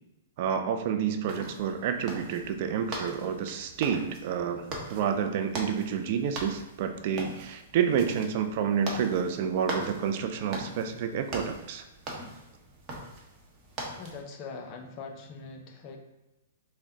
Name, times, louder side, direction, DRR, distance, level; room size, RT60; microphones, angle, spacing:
voice 1, 0.4-11.8, right 7 dB, 50° right, 7 dB, 0.3 m, -29 dB
sound 1, 1.2-14.2, right 1 dB, 30° right, 0.8 m, -41 dB
voice 2, 14.0-16.0, left 4 dB, 35° left, 3 dB, 0.6 m, -42 dB
3.6 x 2.1 x 3.8 m, 0.96 s
hypercardioid pair, 115°, 0 cm